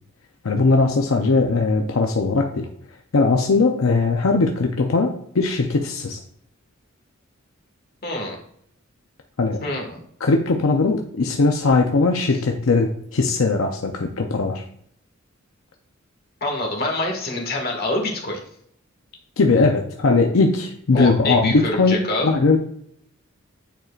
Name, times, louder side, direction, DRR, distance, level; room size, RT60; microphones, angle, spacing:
voice 1, 0.4-2.7 3.1-6.2 9.4-9.6 10.2-14.6 19.4-22.6, left 3 dB, 80° left, 3 dB, 0.6 m, -19 dB
voice 2, 8.0-8.4 9.6-10.0 12.3-12.4 16.4-18.4 20.9-22.3, left 2 dB, 50° left, 1 dB, 1.7 m, -25 dB
9.1 x 4.5 x 2.4 m, 0.68 s
head